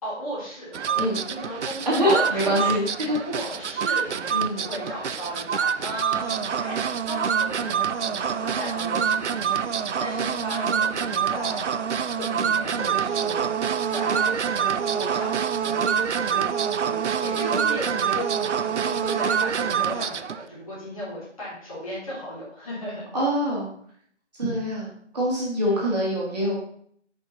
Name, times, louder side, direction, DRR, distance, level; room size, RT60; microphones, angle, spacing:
voice 1, 0.0-15.4 15.6-16.0 16.3-16.4 16.8-23.0 25.6-25.8, equal, 30° left, -7 dB, 3.1 m, -36 dB
sound 1, 0.7-20.4, right 7 dB, 75° right, 0.5 m, -26 dB
voice 2, 1.9-3.2 4.3-4.7 23.1-23.7 24.4-24.9 25.1-26.6, equal, 35° right, -5 dB, 2.2 m, -24 dB
7.0 x 5.3 x 4.1 m, 0.63 s
figure-of-eight pair, 165°, 36 cm